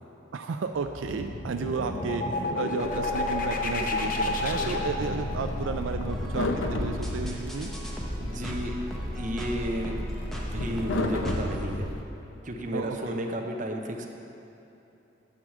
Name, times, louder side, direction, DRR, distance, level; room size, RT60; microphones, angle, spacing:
voice 1, 0.3-7.7 12.7-13.2, right 5 dB, 80° right, 6 dB, 0.4 m, -33 dB
sound 1, 0.7-8.4, left 2 dB, 45° left, 0.7 m, -32 dB
sound 2, 2.8-12.0, left 1 dB, 80° left, 0.7 m, -34 dB
sound 3, 3.1-11.7, equal, ahead, 1.0 m, -39 dB
voice 2, 8.2-8.7 9.1-11.9 12.4-14.1, equal, 40° right, 2 dB, 0.8 m, -33 dB
9.6 x 4.9 x 7.4 m, 2.9 s
head